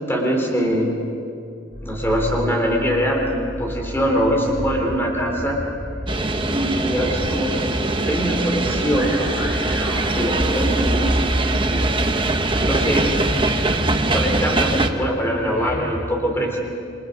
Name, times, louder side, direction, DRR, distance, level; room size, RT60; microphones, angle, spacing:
voice 1, 0.1-0.9 1.8-5.6 6.5-7.5 8.1-9.2 10.1-11.2 11.6-11.8 12.6-13.2 14.1-16.6, equal, 10° left, 0 dB, 3.2 m, -22 dB
sound 1, 1.7-16.0, equal, 45° left, 4.6 m, -33 dB
sound 2, 6.1-14.9, right 2 dB, 25° right, 1.1 m, -22 dB
28.0 x 24.0 x 5.3 m, 2.6 s
head